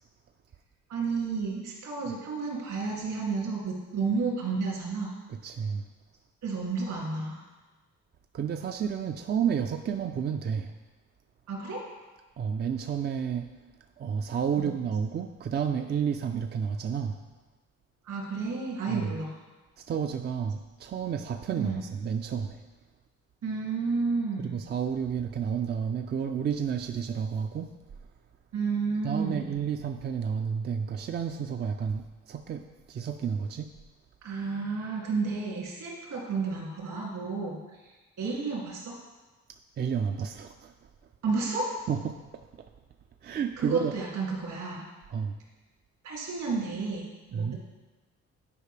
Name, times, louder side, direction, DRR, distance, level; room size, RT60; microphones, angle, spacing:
voice 1, 0.9-5.1 6.4-7.4 11.5-11.8 14.6-14.8 18.0-19.3 21.6-21.8 23.4-24.6 28.5-29.5 34.2-39.0 41.2-41.7 43.6-44.8 46.0-47.6, right 4 dB, 70° right, -3 dB, 2.4 m, -31 dB
voice 2, 5.3-5.8 8.3-10.7 12.4-13.5 14.0-17.2 18.9-19.1 19.8-22.6 24.4-27.7 29.0-33.7 39.8-40.7 41.9-42.2 43.2-43.9 45.1-45.4 47.3-47.6, right 7 dB, 35° right, 6 dB, 0.4 m, -31 dB
9.9 x 4.7 x 3.3 m, 1.2 s
cardioid pair, 90°, 30 cm